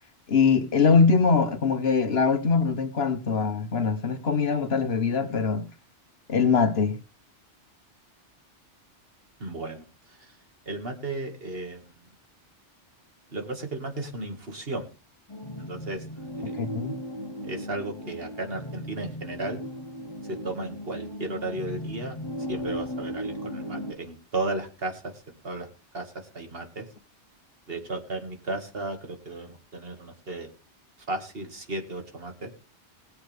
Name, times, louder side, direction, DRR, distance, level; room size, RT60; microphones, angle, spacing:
voice 1, 0.3-5.7 6.3-7.0 16.6-17.0, left 5 dB, 60° left, 1.4 m, -22 dB
voice 2, 9.4-10.3 10.7-11.9 13.3-14.9 15.6-16.6 17.4-19.6 20.3-22.2 22.5-25.7 25.9-26.9 27.7-30.5 31.1-32.5, right 2 dB, 55° right, 2.3 m, -34 dB
sound 1, 15.3-23.9, equal, 25° left, 1.2 m, -36 dB
20.5 x 8.0 x 3.5 m
omnidirectional pair, 1.2 m